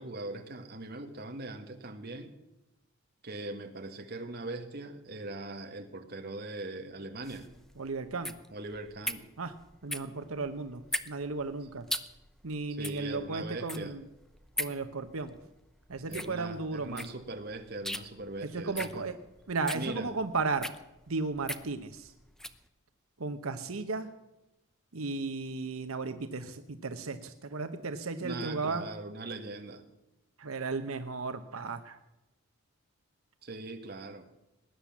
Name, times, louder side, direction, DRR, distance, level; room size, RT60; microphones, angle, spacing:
voice 1, 0.0-2.3 3.2-7.5 8.5-9.2 12.7-13.9 16.1-19.0 19.7-20.1 28.2-29.8 33.4-34.3, right 2 dB, 50° right, 5 dB, 1.8 m, -41 dB
sound 1, 7.2-22.6, left 1 dB, ahead, 0.7 m, -40 dB
voice 2, 7.8-8.3 9.4-9.5 9.8-11.9 12.4-14.0 14.6-15.4 15.9-17.1 18.4-19.2 19.5-20.7 21.1-22.1 23.2-24.1 24.9-28.9 30.4-32.0, right 3 dB, 85° right, 9 dB, 1.0 m, -35 dB
19.5 x 10.0 x 7.3 m, 0.95 s
head